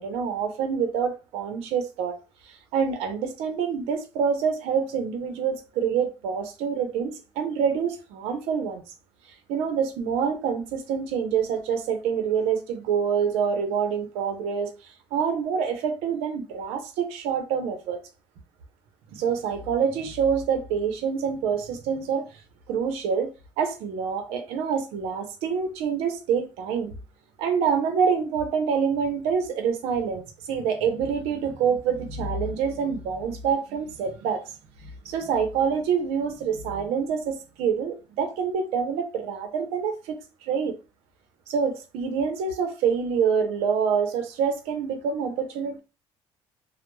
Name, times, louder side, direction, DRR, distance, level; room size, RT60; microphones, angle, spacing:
voice 1, 0.0-2.2 2.4-8.8 9.5-14.7 15.1-18.0 19.1-22.2 22.7-23.3 23.6-26.9 27.4-34.4 34.8-40.2 40.5-40.7 41.5-45.8, right 6 dB, 85° right, 0.7 m, -26 dB
2.2 x 2.1 x 3.0 m
cardioid pair, 135°, 10 cm